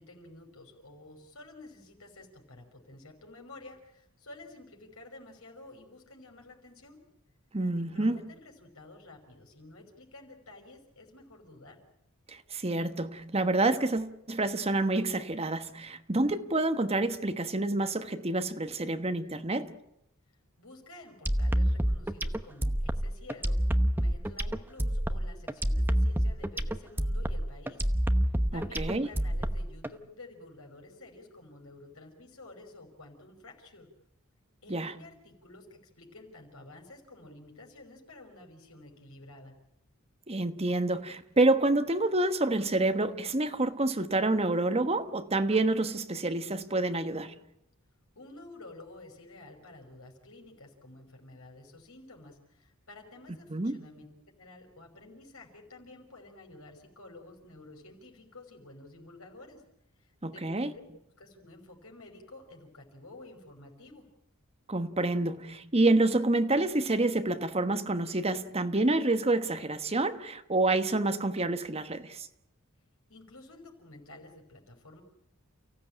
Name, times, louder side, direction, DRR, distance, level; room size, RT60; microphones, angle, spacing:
voice 1, 0.0-7.0 7.8-11.8 20.6-27.9 28.5-33.9 34.6-39.6 48.2-54.1 54.4-59.6 60.0-60.5 60.7-60.9 61.2-64.1 73.1-75.0, left 2 dB, 80° left, 5.6 m, -51 dB
voice 2, 7.5-8.3 12.3-19.8 28.5-29.1 34.7-34.9 40.3-47.4 53.5-53.8 60.2-60.7 64.7-72.3, right 2 dB, 30° right, 1.2 m, -28 dB
sound 1, 21.3-29.9, equal, 10° right, 0.9 m, -28 dB
29.5 x 16.0 x 9.0 m
head